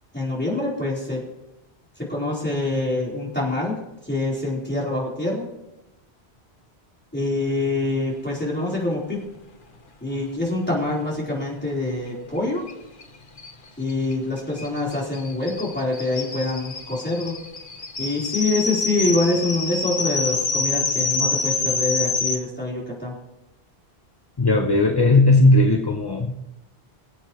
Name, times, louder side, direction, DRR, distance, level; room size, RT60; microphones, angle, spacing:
voice 1, 0.1-1.2 2.0-3.8 4.0-5.5 7.1-9.2 10.0-12.6 13.8-17.4 18.0-23.1, left 2 dB, 10° left, -5 dB, 3.9 m, -25 dB
sound 1, 12.7-12.8 13.0-13.1 13.4-22.4, left 4 dB, 55° left, 1.3 m, -27 dB
voice 2, 24.4-26.4, left 2 dB, 25° left, 4 dB, 0.6 m, -17 dB
22.5 x 8.3 x 3.1 m, 0.97 s
omnidirectional pair, 1.1 m